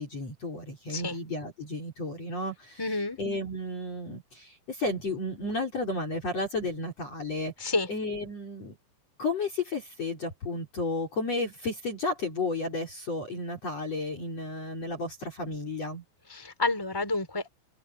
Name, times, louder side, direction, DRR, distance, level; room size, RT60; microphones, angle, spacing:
voice 1, 0.0-2.8 3.2-8.8 9.2-16.0, left 2 dB, 35° left, 5.2 m, -33 dB
voice 2, 2.8-3.2 7.6-7.9 16.3-17.5, left 3 dB, 5° left, 5.2 m, -29 dB
open air
omnidirectional pair, 5.7 m